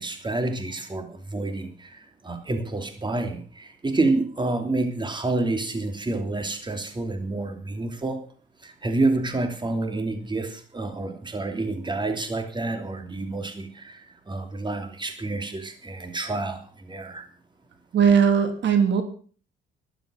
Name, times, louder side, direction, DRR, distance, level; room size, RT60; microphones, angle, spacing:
voice 1, 0.0-8.2 8.6-17.2, right 2 dB, 25° right, 6 dB, 2.9 m, -28 dB
voice 2, 17.9-19.0, right 7 dB, 65° right, 7 dB, 3.0 m, -19 dB
13.0 x 12.0 x 6.2 m, 0.42 s
cardioid pair, 90°, 20 cm